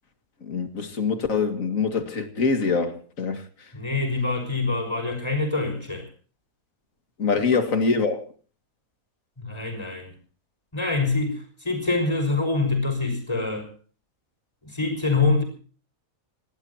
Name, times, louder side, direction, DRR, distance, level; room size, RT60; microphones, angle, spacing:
voice 1, 0.4-3.4 7.2-8.3, left 4 dB, 60° left, 2.5 m, -24 dB
voice 2, 3.7-6.1 7.5-7.6 9.4-10.1 10.7-13.7 14.6-15.4, left 3 dB, 15° left, 6.3 m, -25 dB
27.0 x 18.0 x 2.9 m
omnidirectional pair, 1.6 m